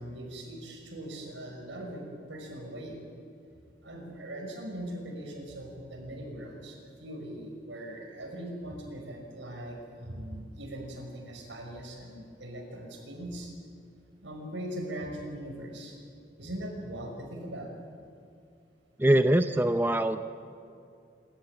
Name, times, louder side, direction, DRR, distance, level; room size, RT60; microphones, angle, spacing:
voice 1, 0.0-3.0 3.8-13.5 14.2-16.0 16.4-17.7, right 1 dB, 90° right, 1 dB, 5.8 m, -40 dB
voice 2, 19.0-20.2, right 1 dB, 10° right, 9 dB, 0.6 m, -23 dB
26.5 x 14.0 x 9.2 m, 2.5 s
head